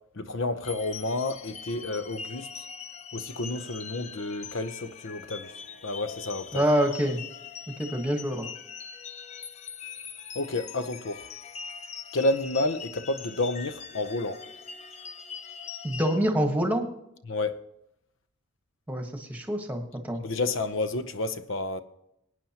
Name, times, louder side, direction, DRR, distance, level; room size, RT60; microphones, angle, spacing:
voice 1, 0.1-2.5 3.1-5.5 5.8-6.6 10.3-11.3 12.1-14.4 17.3-17.6 20.2-21.8, left 2 dB, 65° left, 0.8 m, -30 dB
sound 1, 0.6-16.2, left 6 dB, 35° left, 0.6 m, -42 dB
voice 2, 6.5-7.2 7.8-8.5 15.8-16.9 18.9-20.2, equal, 10° right, 1.3 m, -26 dB
21.5 x 9.2 x 2.9 m
head